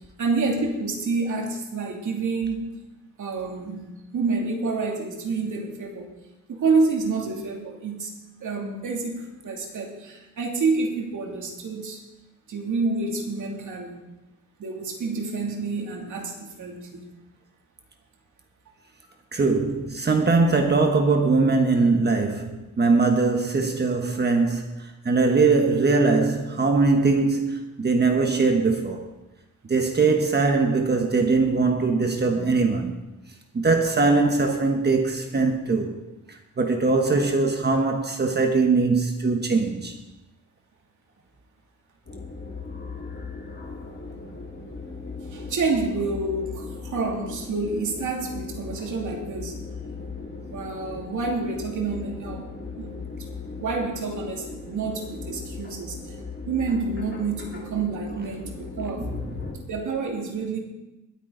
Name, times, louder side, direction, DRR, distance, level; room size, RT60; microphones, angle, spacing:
voice 1, 0.2-2.7 3.2-3.9 4.1-6.1 6.5-8.1 8.4-12.0 12.5-14.0 14.6-17.1 45.3-49.6 50.5-52.9 53.3-56.2 56.5-59.2 59.7-60.6, right 4 dB, 80° right, 2.7 m, -28 dB
voice 2, 19.3-29.0 29.7-33.0 33.5-35.9 36.3-39.9 59.0-59.1, right 3 dB, 35° right, 1.2 m, -21 dB
sound 1, 42.1-59.5, left 4 dB, 40° left, 2.4 m, -38 dB
21.5 x 9.1 x 3.9 m
wide cardioid pair, 150°, 30 cm